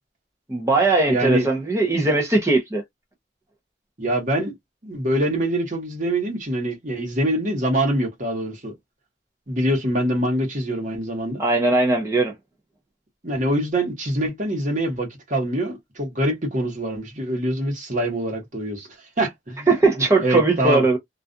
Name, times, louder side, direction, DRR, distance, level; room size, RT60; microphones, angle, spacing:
voice 1, 0.5-2.8 11.4-12.3 19.7-21.0, right 3 dB, 15° right, 0.6 m, -19 dB
voice 2, 1.1-1.5 4.0-4.5 4.8-8.7 9.5-11.4 13.2-19.7 20.2-20.8, right 1 dB, 45° right, 1.1 m, -24 dB
2.4 x 2.3 x 2.5 m
head